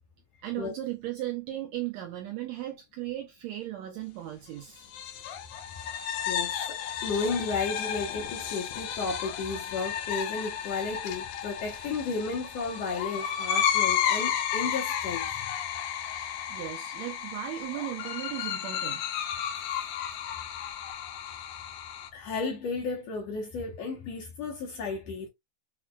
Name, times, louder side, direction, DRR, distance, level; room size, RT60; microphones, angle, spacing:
voice 1, 0.4-4.9 16.1-19.0, right 14 dB, 80° right, 1.6 m, -36 dB
sound 1, 4.8-22.1, left 9 dB, 85° left, 1.4 m, -32 dB
voice 2, 6.3-15.3 22.1-25.3, left 4 dB, 70° left, 1.7 m, -33 dB
5.9 x 2.2 x 2.2 m
omnidirectional pair, 3.7 m